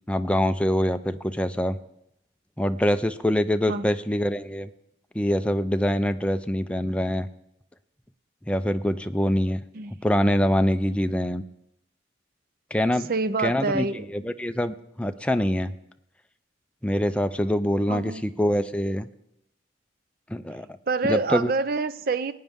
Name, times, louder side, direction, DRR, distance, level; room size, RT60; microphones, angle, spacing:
voice 1, 0.1-1.8 2.6-4.7 5.1-7.3 8.5-9.6 10.0-11.4 12.7-13.1 13.4-13.9 14.1-15.7 16.8-19.1 20.3-20.7 21.1-21.5, equal, 5° left, 8 dB, 0.4 m, -24 dB
voice 2, 13.1-14.3 17.9-18.2 20.9-22.3, right 3 dB, 55° right, 14 dB, 0.5 m, -27 dB
20.0 x 9.3 x 3.6 m, 0.80 s
head